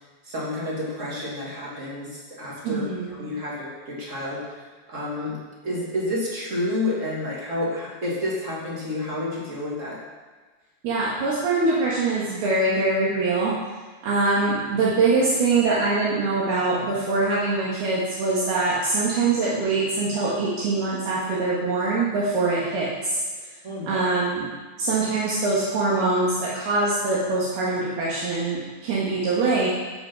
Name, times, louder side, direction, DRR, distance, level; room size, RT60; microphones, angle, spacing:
voice 1, 0.3-4.4 4.9-5.4 5.6-10.0 23.6-24.0, left 1 dB, 25° right, -5 dB, 1.9 m, -30 dB
voice 2, 2.6-3.2 10.8-13.6 14.0-23.2 23.9-24.5 24.8-29.7, right 3 dB, 70° right, -7 dB, 3.5 m, -23 dB
15.0 x 6.0 x 5.4 m, 1.3 s
omnidirectional pair, 5.0 m